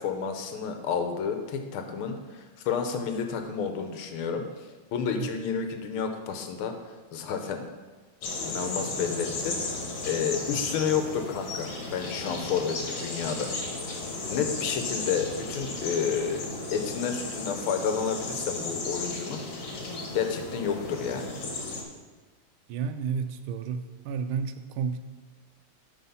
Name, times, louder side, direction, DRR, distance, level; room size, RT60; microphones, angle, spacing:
voice 1, 0.0-4.5 4.9-6.7 7.1-7.6 8.4-9.6 10.0-13.5 14.3-19.4 20.1-21.3, left 6 dB, 85° left, 6 dB, 1.7 m, -30 dB
sound 1, 8.2-21.8, left 3 dB, 65° left, 2.0 m, -35 dB
voice 2, 22.7-25.0, right 6 dB, 85° right, 10 dB, 1.4 m, -31 dB
9.4 x 4.1 x 5.5 m, 1.3 s
omnidirectional pair, 2.3 m